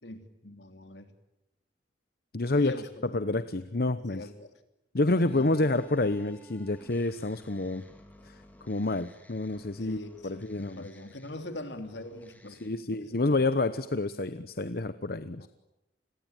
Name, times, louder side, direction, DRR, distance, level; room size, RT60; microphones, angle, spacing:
voice 1, 0.0-1.1 2.5-3.3 3.9-4.5 5.1-5.8 9.8-13.0 15.4-15.5, left 1 dB, 90° left, 7 dB, 3.2 m, -42 dB
voice 2, 2.3-2.7 3.1-4.2 4.9-7.8 8.2-10.0 10.2-10.9 12.6-15.5, left 2 dB, 60° left, 12 dB, 0.9 m, -28 dB
sound 1, 5.3-12.7, equal, 10° left, 3.2 m, -54 dB
29.0 x 21.5 x 9.1 m, 0.91 s
head